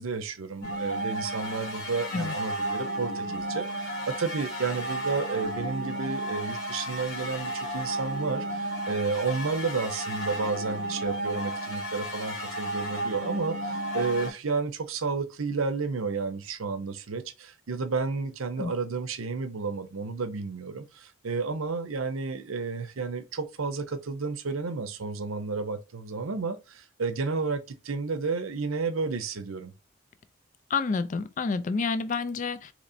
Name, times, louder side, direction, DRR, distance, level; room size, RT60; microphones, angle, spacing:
voice 1, 0.0-29.7, right 4 dB, 80° right, 0.6 m, -31 dB
sound 1, 0.6-14.3, right 1 dB, 90° left, 1.3 m, -33 dB
voice 2, 30.7-32.7, left 4 dB, 35° left, 0.3 m, -29 dB
4.2 x 2.9 x 2.6 m
head